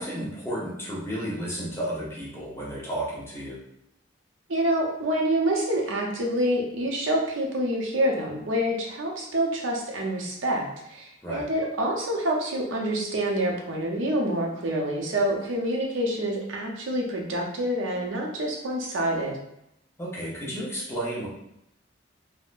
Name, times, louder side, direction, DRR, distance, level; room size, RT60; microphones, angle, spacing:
voice 1, 0.0-3.6 11.2-11.5 20.0-21.3, right 1 dB, 15° left, -6 dB, 0.7 m, -32 dB
voice 2, 4.5-19.4, right 1 dB, 85° right, -1 dB, 0.7 m, -27 dB
3.5 x 2.1 x 2.4 m, 0.81 s
head